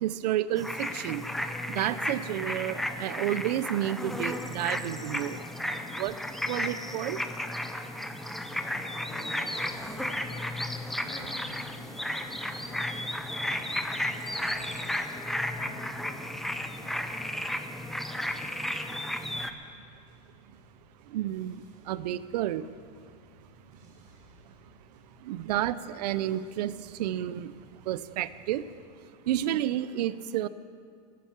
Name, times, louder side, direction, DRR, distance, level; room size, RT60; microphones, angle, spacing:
voice 1, 0.0-1.2 1.7-5.4 6.0-6.1 6.5-7.2 21.1-21.6 21.9-22.6 25.3-27.5 27.9-28.6 29.3-30.5, right 12 dB, 75° right, 16 dB, 0.6 m, -30 dB
sound 1, 0.6-19.5, left 1 dB, ahead, 0.5 m, -34 dB
voice 2, 8.2-15.3 15.6-17.0 23.8-24.2 25.3-25.5, left 2 dB, 85° left, -6 dB, 3.3 m, -51 dB
sound 2, 9.5-28.8, right 2 dB, 45° right, 5.2 m, -58 dB
17.0 x 9.5 x 7.3 m, 2.2 s
supercardioid pair, 150°, 21 cm